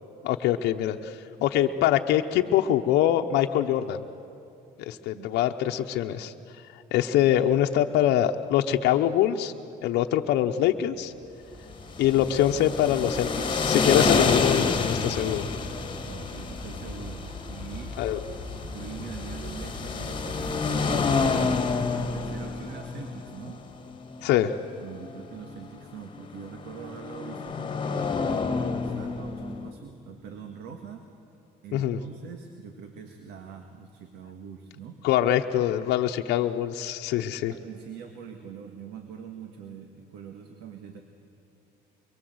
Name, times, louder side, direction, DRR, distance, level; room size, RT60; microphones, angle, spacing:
voice 1, 0.2-4.0 4.9-6.3 6.9-9.5 9.8-11.1 12.0-15.5 18.0-18.2 24.2-24.6 31.7-32.0 35.0-37.5, left 11 dB, 85° left, 4 dB, 0.9 m, -24 dB
sound 1, 10.9-21.7, left 2 dB, 20° right, 7.1 m, -41 dB
sound 2, 11.8-29.7, left 4 dB, 30° left, 1.9 m, -29 dB
voice 2, 16.0-18.0 18.7-21.0 22.0-23.7 24.8-27.8 28.7-31.1 31.6-35.0 37.6-41.0, right 7 dB, 80° right, 5 dB, 1.9 m, -43 dB
24.0 x 23.0 x 8.0 m, 2.9 s
cardioid pair, 110°, 17 cm